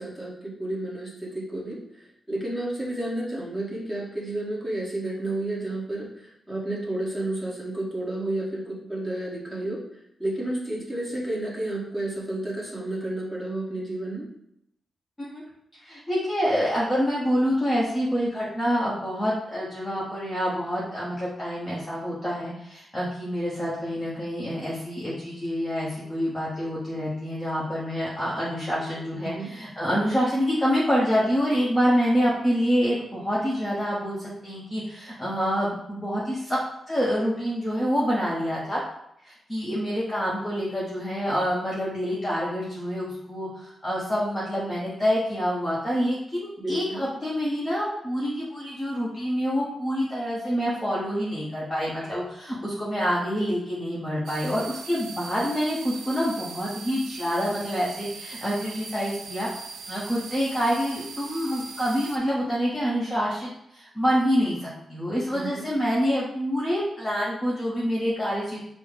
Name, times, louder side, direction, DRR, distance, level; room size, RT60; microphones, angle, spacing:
voice 1, 0.0-9.8 10.2-14.3 29.1-29.5 46.6-47.1 65.3-65.7, right 1 dB, ahead, -6 dB, 1.3 m, -31 dB
voice 2, 15.8-36.6 36.9-38.8 39.2-59.5 59.9-68.6, equal, 15° left, -7 dB, 0.9 m, -27 dB
sound 1, 54.3-62.2, right 5 dB, 85° right, 0.4 m, -40 dB
5.3 x 2.1 x 4.9 m, 0.77 s
wide cardioid pair, 145°, 0 cm